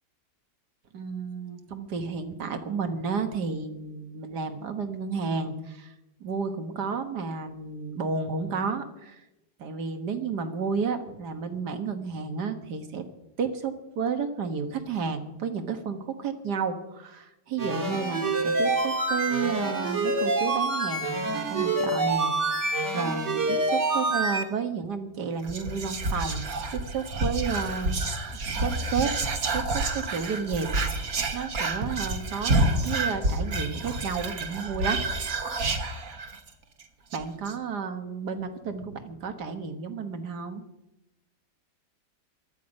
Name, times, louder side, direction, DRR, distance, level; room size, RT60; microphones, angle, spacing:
voice 1, 0.9-5.9 6.2-9.2 9.6-13.0 13.4-26.4 26.8-28.0 28.6-29.1 29.5-30.7 31.3-35.3 37.1-40.6, right 5 dB, 75° right, 7 dB, 2.0 m, -32 dB
sound 1, 17.6-24.4, right 2 dB, 45° right, 2.2 m, -26 dB
Whispering, 25.4-36.5 36.8-36.9 37.1-37.5, right 2 dB, 60° right, 1.8 m, -29 dB
18.5 x 13.0 x 5.3 m, 0.94 s
omnidirectional pair, 1.8 m